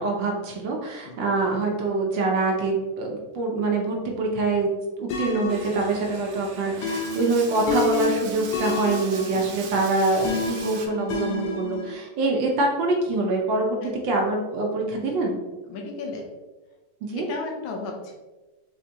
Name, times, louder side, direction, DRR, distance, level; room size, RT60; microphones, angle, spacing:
voice 1, 0.0-4.7 5.0-13.8 14.0-15.4 17.0-17.3, right 3 dB, 70° right, 0 dB, 1.3 m, -25 dB
sound 1, 5.1-12.0, left 3 dB, 90° left, 1.6 m, -30 dB
Bathtub (filling or washing), 5.5-10.9, right 5 dB, 85° right, 1.5 m, -40 dB
voice 2, 9.3-9.6 13.8-14.0 15.6-16.3 17.2-18.1, left 3 dB, 75° left, 1 dB, 1.4 m, -35 dB
4.3 x 3.8 x 2.8 m, 1.1 s
omnidirectional pair, 2.3 m